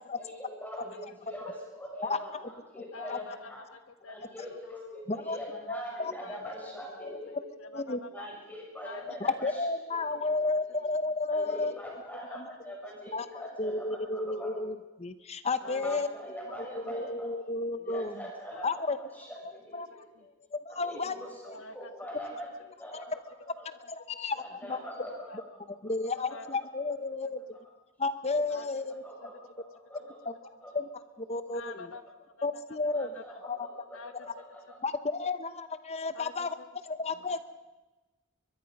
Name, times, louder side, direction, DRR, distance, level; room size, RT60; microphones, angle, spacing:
voice 1, 0.2-3.6 4.0-7.3 8.1-9.6 9.9-10.0 11.3-12.4 12.6-14.5 15.6-17.3 17.7-20.0 20.8-22.5 22.8-23.7 24.4-25.4 28.4-28.6 29.0-30.3 30.6-30.7 32.9-34.8, equal, 10° left, -2 dB, 7.3 m, -43 dB
voice 2, 2.9-4.6 5.1-5.2 6.2-8.3 8.8-9.0 12.3-12.7 15.6-15.8 18.5-18.7 20.1-20.3 21.5-21.9 24.6-25.4 26.2-26.5 27.2-27.3 28.5-28.7 31.5-33.2 33.9-34.4 36.1-36.7, left 3 dB, 70° left, 9 dB, 1.6 m, -48 dB
voice 3, 5.7-6.1 7.0-7.2 7.7-8.0 9.2-11.7 12.3-12.5 13.1-13.3 13.6-16.1 16.6-18.1 18.6-19.0 19.4-19.9 20.2-21.1 22.9-23.1 23.9-24.8 25.8-27.4 28.0-29.0 30.3-30.4 30.7-30.9 31.2-31.7 32.4-33.1 33.4-33.7 34.8-36.5 36.8-37.4, left 3 dB, 30° left, 12 dB, 0.9 m, -32 dB
22.5 x 22.0 x 5.4 m, 1.1 s
head